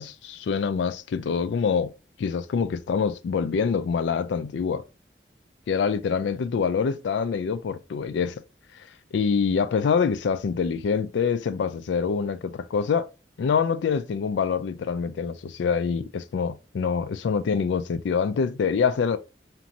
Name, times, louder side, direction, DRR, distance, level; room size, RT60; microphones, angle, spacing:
voice 1, 0.0-1.9 2.2-4.8 5.7-8.4 9.1-13.1 13.4-19.2, left 6 dB, 90° left, 0.3 m, -25 dB
3.0 x 2.6 x 2.6 m
head